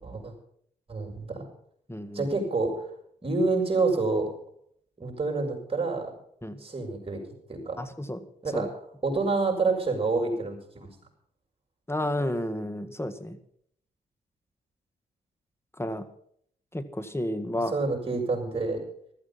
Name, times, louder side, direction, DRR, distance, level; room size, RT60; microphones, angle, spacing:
voice 1, 0.0-0.3 0.9-1.5 2.1-2.7 3.2-4.2 5.0-6.1 6.6-7.2 7.5-7.8 8.4-8.7 9.0-10.9 17.7-18.8, right 3 dB, 30° right, 1 dB, 6.9 m, -27 dB
voice 2, 1.9-2.3 6.4-6.6 7.8-8.2 8.5-8.7 11.9-13.4 15.8-16.1 16.7-17.8, left 1 dB, 15° left, 10 dB, 1.8 m, -31 dB
15.0 x 13.5 x 5.8 m, 0.65 s
supercardioid pair, 55°, 19 cm